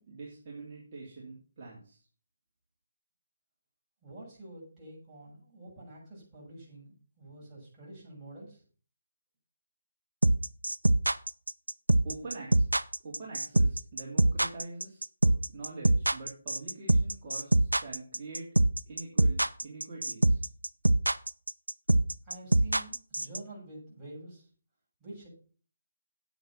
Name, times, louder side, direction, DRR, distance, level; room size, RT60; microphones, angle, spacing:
voice 1, 0.0-2.0 12.0-12.6 13.0-18.5 18.9-20.4, right 3 dB, 30° right, -5 dB, 3.1 m, -44 dB
voice 2, 4.0-8.6 22.2-24.5 25.0-25.3, right 1 dB, 10° right, -8 dB, 7.3 m, -48 dB
sound 1, 10.2-23.4, right 1 dB, 90° right, 0.6 m, -23 dB
9.1 x 8.5 x 5.9 m, 0.42 s
figure-of-eight pair, 150°, 0 cm